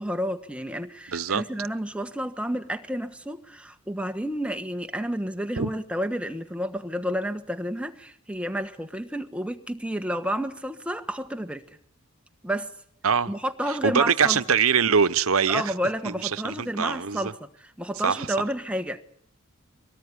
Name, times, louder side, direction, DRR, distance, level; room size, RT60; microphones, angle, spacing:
voice 1, 0.0-11.6 12.4-12.7 13.3-14.4 15.5-19.0, equal, 5° right, 1.4 m, -30 dB
voice 2, 1.1-1.4 5.6-5.7 13.0-13.3 13.7-15.7 16.0-17.3 18.0-18.3, right 6 dB, 75° right, 0.9 m, -23 dB
24.0 x 18.5 x 9.9 m
head